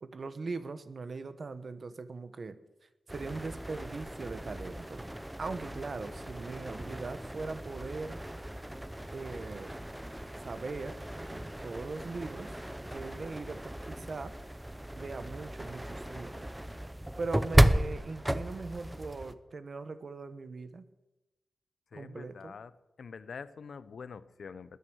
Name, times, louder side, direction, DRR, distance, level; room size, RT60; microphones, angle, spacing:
voice 1, 0.0-2.6 3.1-5.1 5.4-8.2 9.1-9.8 10.4-11.0 11.3-12.6 12.9-14.3 15.0-16.5 17.2-20.8 21.9-22.6, right 3 dB, 55° right, 12 dB, 1.1 m, -40 dB
sound 1, 3.1-19.3, right 1 dB, 10° right, 0.7 m, -34 dB
voice 2, 21.9-22.7 23.0-24.8, left 5 dB, 75° left, 15 dB, 0.7 m, -45 dB
20.5 x 9.4 x 6.3 m, 1.0 s
wide cardioid pair, 85°, 0 cm